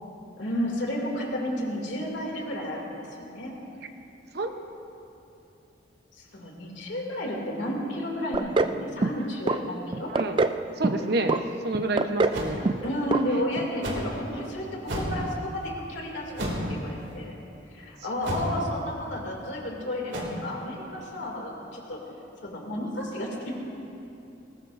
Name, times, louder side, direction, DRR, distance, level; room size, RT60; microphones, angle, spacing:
voice 1, 0.4-3.6 6.3-10.1 12.8-17.4 17.7-22.0 22.4-23.5, left 1 dB, 70° left, -1 dB, 2.6 m, -32 dB
sound 1, 8.3-8.8 9.0-9.6 9.9-10.6 10.8-11.4 11.7-12.4 12.6-12.9 13.1-13.2 13.6-13.7, right 3 dB, 25° right, 0.3 m, -24 dB
voice 2, 10.8-11.4 11.6-12.6, right 2 dB, 55° right, 6 dB, 0.9 m, -28 dB
sound 2, 12.3-12.5 13.8-14.1 14.8-15.2 16.3-16.7 18.2-18.6 20.1-20.2, right 1 dB, 75° right, 2.5 m, -31 dB
21.0 x 18.5 x 2.6 m, 2.8 s
head